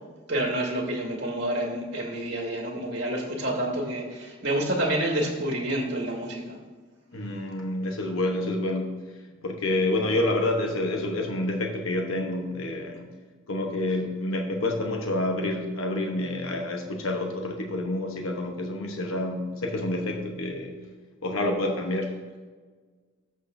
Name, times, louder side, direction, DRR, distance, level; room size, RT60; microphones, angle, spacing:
voice 1, 0.3-6.6, right 1 dB, 55° right, -1 dB, 2.0 m, -28 dB
voice 2, 7.1-9.0 9.4-13.1 13.5-20.8 21.2-22.1, left 1 dB, 70° left, 2 dB, 1.0 m, -28 dB
14.0 x 6.3 x 2.6 m, 1.4 s
head